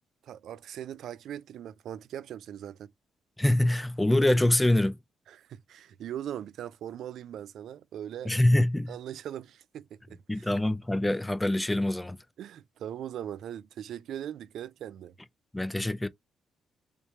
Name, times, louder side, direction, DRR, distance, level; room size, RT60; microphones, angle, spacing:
voice 1, 0.2-2.9 5.3-8.3 8.9-10.5 12.4-15.1, right 10 dB, 70° right, 0.4 m, -40 dB
voice 2, 3.4-5.0 8.2-8.9 10.3-12.2 15.5-16.1, left 1 dB, 10° left, 0.5 m, -24 dB
3.3 x 3.1 x 2.8 m
cardioid pair, 90°, 0 cm